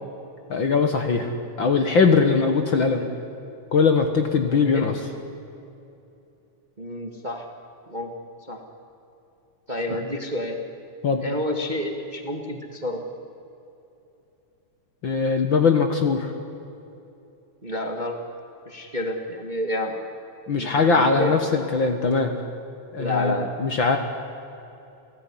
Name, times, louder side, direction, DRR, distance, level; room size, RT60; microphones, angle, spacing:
voice 1, 0.5-1.3 1.6-3.0 3.7-4.9 11.0-11.2 15.0-16.3 20.5-22.3 22.9-23.3 23.6-24.0, left 5 dB, 50° left, 6 dB, 1.8 m, -20 dB
voice 2, 4.5-4.9 6.8-7.4 7.9-8.1 8.5-8.6 9.7-10.6 11.2-13.0 17.6-18.2 18.6-19.9 20.5-21.4 23.0-23.5, left 1 dB, 20° right, 4 dB, 1.5 m, -29 dB
29.0 x 17.5 x 9.9 m, 2.8 s
omnidirectional pair, 3.3 m